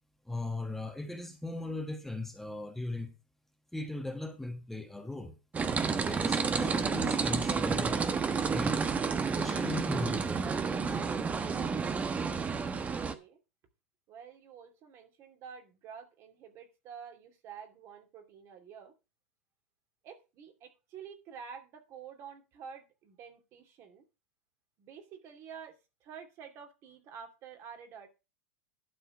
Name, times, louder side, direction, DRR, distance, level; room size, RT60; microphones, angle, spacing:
voice 1, 0.2-3.1 3.7-5.4 6.1-8.1 8.4-8.8 9.3-10.5, left 2 dB, 5° left, 1.5 m, -38 dB
sound 1, 5.5-13.1, right 5 dB, 20° right, 1.1 m, -30 dB
voice 2, 12.7-13.4 14.1-18.9 20.0-24.0 24.8-25.8 26.0-28.1, right 7 dB, 45° right, 2.5 m, -49 dB
12.0 x 4.5 x 5.7 m
hypercardioid pair, 85°, 7 cm